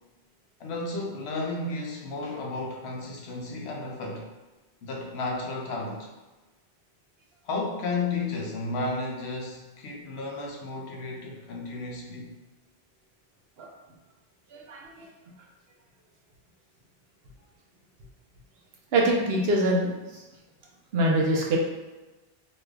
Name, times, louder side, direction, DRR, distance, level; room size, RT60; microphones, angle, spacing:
voice 1, 0.6-4.3 4.8-6.1 7.4-12.4, left 3 dB, 80° left, -1 dB, 0.9 m, -33 dB
voice 2, 14.5-15.1 18.9-19.9 20.9-21.6, right 1 dB, 70° right, -1 dB, 0.9 m, -24 dB
3.0 x 2.4 x 3.3 m, 1.1 s
omnidirectional pair, 1.1 m